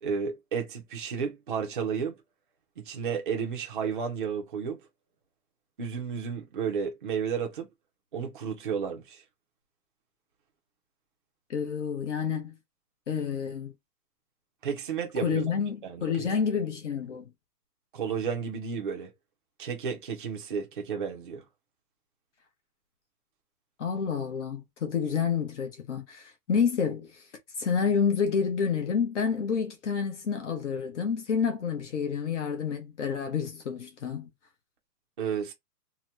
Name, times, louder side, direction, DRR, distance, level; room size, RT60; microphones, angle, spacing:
voice 1, 0.0-2.2 2.8-4.8 5.8-7.7 8.1-9.2 14.6-15.4 15.8-16.3 17.9-19.1 19.6-21.4 35.2-35.5, right 6 dB, 35° right, 0.5 m, -32 dB
voice 2, 11.5-12.5 13.1-13.7 15.2-17.3 23.8-27.2 27.6-34.3, left 6 dB, 50° left, 0.8 m, -29 dB
2.8 x 2.1 x 3.2 m
hypercardioid pair, 170°, 47 cm